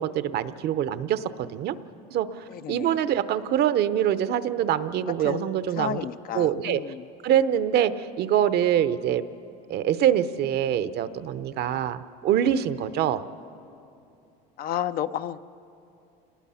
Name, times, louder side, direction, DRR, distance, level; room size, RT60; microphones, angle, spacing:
voice 1, 0.0-1.8 2.1-6.0 6.3-6.8 7.2-9.2 9.7-13.2, right 10 dB, 50° right, 13 dB, 0.8 m, -24 dB
voice 2, 2.5-3.0 5.2-7.1 11.7-11.8 14.6-15.4, left 10 dB, 45° left, 12 dB, 0.6 m, -32 dB
27.5 x 19.5 x 5.7 m, 2.6 s
supercardioid pair, 120°, 21 cm